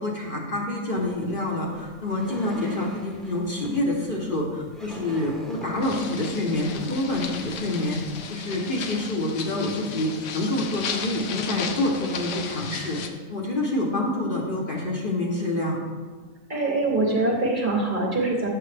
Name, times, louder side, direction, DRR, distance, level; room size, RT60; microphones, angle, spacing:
voice 1, 0.0-8.0 8.3-13.0 13.3-15.8, left 1 dB, 45° left, -2 dB, 1.0 m, -27 dB
sound 1, 0.9-8.3, right 1 dB, ahead, 0.8 m, -43 dB
sound 2, 5.8-13.1, left 6 dB, 80° left, 1.0 m, -35 dB
voice 2, 16.5-18.5, right 2 dB, 45° right, -1 dB, 0.9 m, -23 dB
7.7 x 6.0 x 3.3 m, 1.4 s
omnidirectional pair, 1.4 m